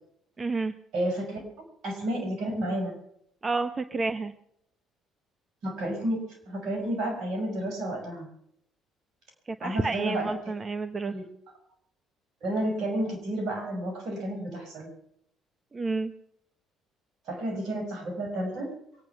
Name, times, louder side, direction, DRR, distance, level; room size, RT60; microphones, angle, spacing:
voice 1, 0.4-0.7 3.4-4.3 9.5-11.1 15.7-16.1, right 3 dB, 30° right, 10 dB, 1.0 m, -30 dB
voice 2, 0.9-1.4 1.8-3.0 5.6-8.3 9.6-10.5 11.1-11.3 12.4-14.9 17.3-18.7, right 1 dB, 65° right, 3 dB, 5.7 m, -31 dB
23.5 x 9.3 x 5.9 m, 0.73 s
hypercardioid pair, 60°, 0 cm